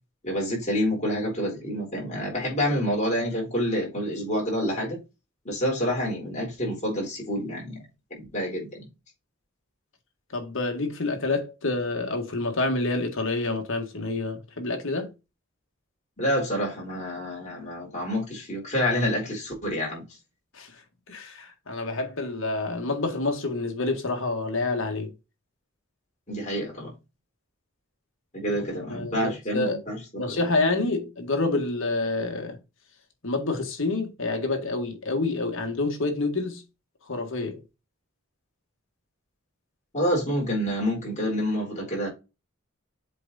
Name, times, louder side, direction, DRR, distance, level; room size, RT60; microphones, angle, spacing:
voice 1, 0.2-5.0 5.4-7.8 8.1-8.9 16.2-20.0 26.3-26.9 28.3-30.4 39.9-42.1, equal, 35° left, 4.2 m, -28 dB
voice 2, 10.3-15.1 20.5-20.7 21.1-25.1 28.9-29.8 30.2-32.6 33.2-36.6 37.1-37.6, left 2 dB, 60° left, 1.8 m, -28 dB
7.6 x 3.6 x 4.1 m
head